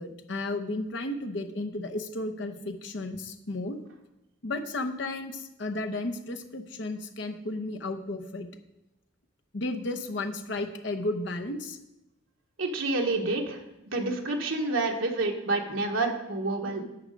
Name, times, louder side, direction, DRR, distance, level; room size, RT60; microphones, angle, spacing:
voice 1, 0.0-3.8 4.4-8.5 9.5-11.8, left 2 dB, 60° left, 5 dB, 0.8 m, -33 dB
voice 2, 12.6-13.6 13.9-16.8, right 2 dB, 75° right, 1 dB, 1.2 m, -28 dB
9.8 x 6.4 x 5.1 m, 0.91 s
head